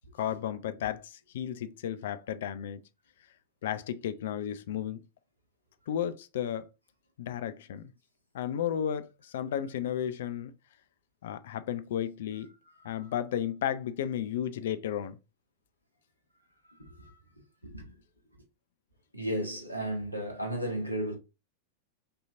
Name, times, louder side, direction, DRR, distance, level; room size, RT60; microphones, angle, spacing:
voice 1, 0.2-2.8 3.6-5.0 5.9-6.7 7.2-7.9 8.3-10.5 11.2-12.5 12.8-15.2, left 10 dB, 60° left, 0.4 m, -33 dB
voice 2, 12.8-13.1 16.7-17.2 17.6-18.0 18.3-18.4 19.1-21.2, equal, 85° right, 1.1 m, -35 dB
5.4 x 2.8 x 2.5 m
figure-of-eight pair, 90°, 0 cm